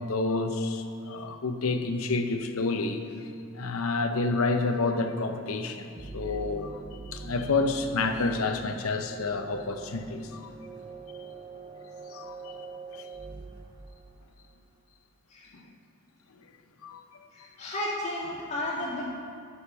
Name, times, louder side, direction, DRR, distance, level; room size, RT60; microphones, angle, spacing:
voice 1, 0.0-3.0 3.5-10.6 12.1-13.1 15.5-15.7 16.8-17.0, left 3 dB, 80° left, 6 dB, 0.7 m, -29 dB
sound 1, 6.0-14.6, right 3 dB, 20° right, 0.4 m, -44 dB
voice 2, 17.3-19.1, left 1 dB, 30° left, -6 dB, 2.1 m, -33 dB
8.3 x 6.5 x 6.2 m, 2.3 s
head